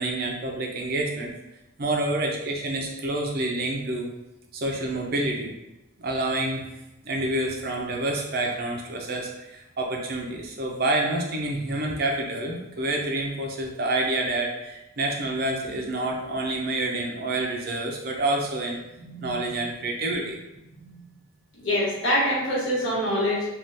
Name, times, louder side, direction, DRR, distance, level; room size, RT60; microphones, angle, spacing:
voice 1, 0.0-1.3 1.8-4.1 4.5-5.5 6.0-6.7 7.0-18.8 19.2-20.4, right 2 dB, 45° right, 1 dB, 0.5 m, -28 dB
voice 2, 19.0-19.6 20.8-20.9 21.6-23.5, equal, 60° left, -7 dB, 1.3 m, -26 dB
3.4 x 2.3 x 2.6 m, 0.93 s
head